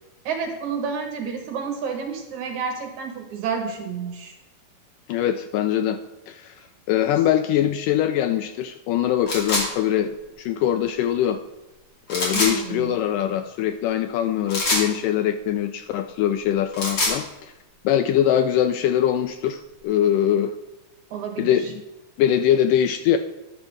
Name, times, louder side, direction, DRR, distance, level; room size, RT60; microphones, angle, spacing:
voice 1, 0.3-4.3 12.3-12.9 21.1-21.7, right 6 dB, 65° right, 4 dB, 2.1 m, -30 dB
voice 2, 5.1-6.0 6.3-6.6 6.9-11.4 12.1-17.5 17.8-20.5 21.4-21.8 22.2-23.2, left 10 dB, 80° left, 9 dB, 1.9 m, -22 dB
sound 1, 9.3-9.7 12.1-12.5 14.5-14.9 16.6-17.2, left 2 dB, 40° left, 3.2 m, -23 dB
13.5 x 10.5 x 3.2 m, 1.0 s
omnidirectional pair, 4.1 m